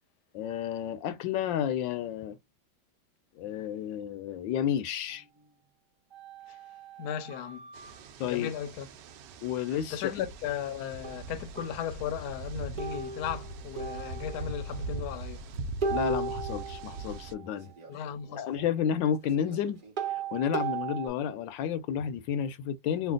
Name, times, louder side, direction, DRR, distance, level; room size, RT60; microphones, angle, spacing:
voice 1, 0.3-2.4 3.4-5.2 8.2-8.5 9.4-10.0 15.9-18.0 18.4-19.8 20.3-23.1, left 9 dB, 85° left, 1.3 m, -31 dB
sound 1, 6.1-8.0 11.0-11.2 11.6-11.7 12.8-14.7 15.8-18.7 19.1-21.1, right 5 dB, 35° right, 0.9 m, -37 dB
voice 2, 7.0-7.7 8.2-8.9 9.9-15.5 17.9-18.5, left 9 dB, 70° left, 1.1 m, -36 dB
sound 2, 7.7-17.3, right 3 dB, 75° right, 1.2 m, -41 dB
3.2 x 2.4 x 3.7 m
omnidirectional pair, 2.0 m